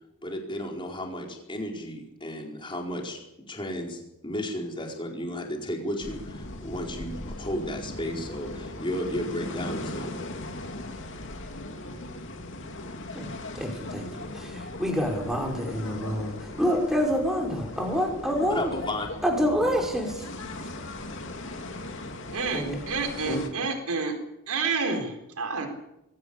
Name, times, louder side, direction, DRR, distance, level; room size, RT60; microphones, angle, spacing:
voice 1, 0.2-3.2 3.5-10.1 18.3-19.1, left 1 dB, 20° left, 1 dB, 4.5 m, -33 dB
sound 1, 6.0-23.5, left 2 dB, 60° left, 2.8 m, -38 dB
voice 2, 13.1-18.8 19.2-20.3 22.5-22.8 23.3-23.4, equal, ahead, 0 dB, 5.3 m, -27 dB
voice 3, 22.3-24.2 24.5-25.7, right 4 dB, 85° right, 5 dB, 4.3 m, -29 dB
22.5 x 16.5 x 8.6 m, 0.87 s
head